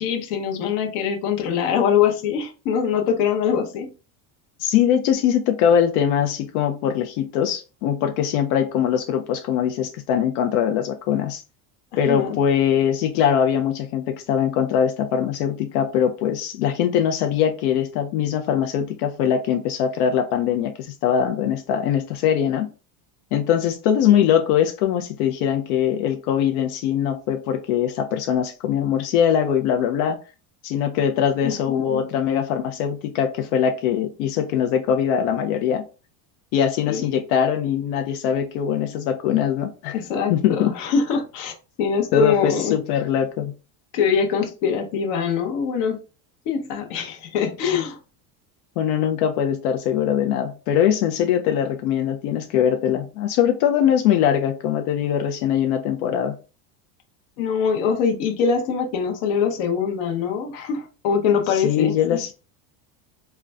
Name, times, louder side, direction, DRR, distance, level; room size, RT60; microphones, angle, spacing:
voice 1, 0.0-3.9 12.1-12.4 31.4-32.1 36.9-37.1 39.9-42.8 43.9-46.0 46.5-48.0 57.4-62.3, left 7 dB, 60° left, 0.8 m, -23 dB
voice 2, 4.6-11.4 12.0-22.7 23.3-30.2 30.6-35.8 36.5-40.0 40.3-40.7 42.1-43.5 48.8-56.4 61.5-62.3, left 9 dB, 90° left, 0.5 m, -22 dB
3.7 x 2.2 x 2.2 m
cardioid pair, 170°, 42 cm